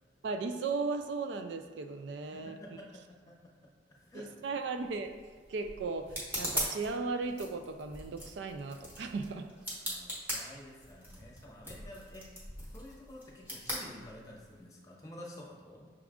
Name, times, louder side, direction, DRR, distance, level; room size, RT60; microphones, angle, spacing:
voice 1, 0.2-2.6 4.1-5.1 5.5-9.5, right 4 dB, 70° right, 7 dB, 0.3 m, -36 dB
voice 2, 2.3-4.3 9.6-15.9, left 1 dB, 20° left, -3 dB, 0.8 m, -51 dB
sound 1, 4.8-14.6, equal, 10° right, 1.1 m, -41 dB
5.9 x 2.4 x 3.5 m, 1.5 s
head